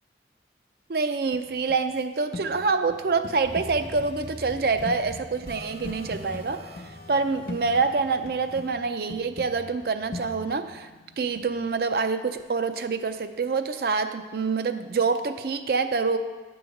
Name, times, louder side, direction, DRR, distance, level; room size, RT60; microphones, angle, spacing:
voice 1, 0.9-6.6 7.1-10.9 11.2-16.2, right 4 dB, 60° right, 9 dB, 0.4 m, -26 dB
sound 1, 1.3-2.0 2.3-2.5 2.9-4.1 4.8-8.7 9.1-11.7 13.1-13.2, left 2 dB, 55° left, 0.7 m, -41 dB
sound 2, 3.4-8.7, equal, 35° right, 1.5 m, -43 dB
9.1 x 3.1 x 6.3 m, 1.3 s
head